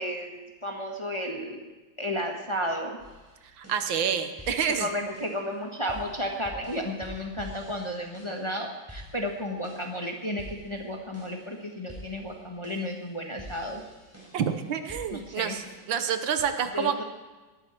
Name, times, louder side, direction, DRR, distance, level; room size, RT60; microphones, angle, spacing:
voice 1, 0.0-1.6 2.0-3.0 4.5-13.8 15.1-15.6 16.7-17.0, equal, 15° left, 1 dB, 1.3 m, -33 dB
sound 1, 3.0-16.4, equal, 5° right, 5.0 m, -49 dB
voice 2, 3.6-4.9 14.3-17.0, right 7 dB, 80° right, 8 dB, 1.7 m, -28 dB
18.5 x 12.5 x 4.5 m, 1.2 s
omnidirectional pair, 2.1 m